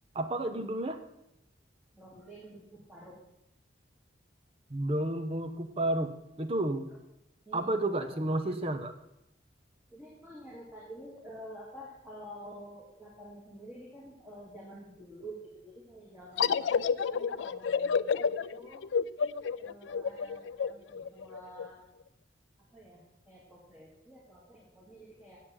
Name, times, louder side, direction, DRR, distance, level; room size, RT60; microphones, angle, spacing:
voice 1, 0.1-1.0 4.7-6.1 6.4-6.9 7.5-8.9, right 1 dB, 30° right, 8 dB, 0.7 m, -31 dB
voice 2, 1.9-3.2 7.5-8.6 9.9-18.9 19.6-21.8 22.7-25.4, right 1 dB, 10° right, -5 dB, 2.2 m, -49 dB
sound 1, 16.4-21.7, left 6 dB, 75° left, 0.4 m, -30 dB
8.2 x 7.4 x 8.8 m, 0.87 s
head